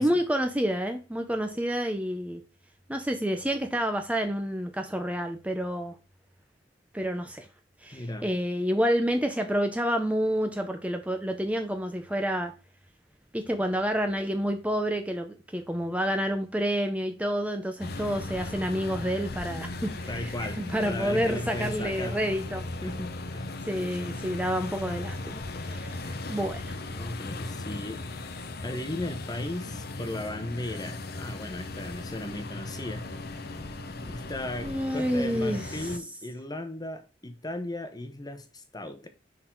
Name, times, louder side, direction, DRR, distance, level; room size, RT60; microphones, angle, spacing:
voice 1, 0.0-2.4 2.9-6.0 6.9-7.5 7.8-12.5 13.3-22.6 23.7-26.8 34.6-35.9, equal, 10° right, 0.7 m, -29 dB
voice 2, 7.9-8.3 20.1-22.2 22.8-23.6 26.9-28.0 28.6-33.1 34.1-39.1, left 1 dB, 20° left, 1.1 m, -36 dB
sound 1, 17.8-36.0, left 2 dB, 60° left, 0.9 m, -37 dB
10.0 x 4.0 x 4.5 m
head